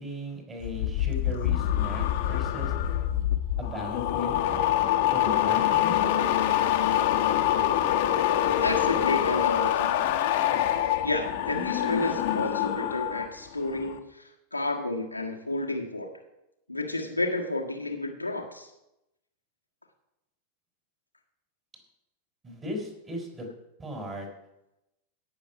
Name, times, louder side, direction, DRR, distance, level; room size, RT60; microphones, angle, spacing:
voice 1, 0.0-2.7 3.6-4.4 5.1-6.0 22.4-23.5 23.8-24.3, equal, 20° right, 3 dB, 4.5 m, -37 dB
sound 1, 0.6-13.3 13.6-14.0, left 11 dB, 50° left, 1.4 m, -25 dB
voice 2, 8.5-10.0 11.0-16.1 16.7-18.7, left 2 dB, 85° left, 1 dB, 1.6 m, -31 dB
17.0 x 7.0 x 5.9 m, 0.90 s
figure-of-eight pair, 90°, 0 cm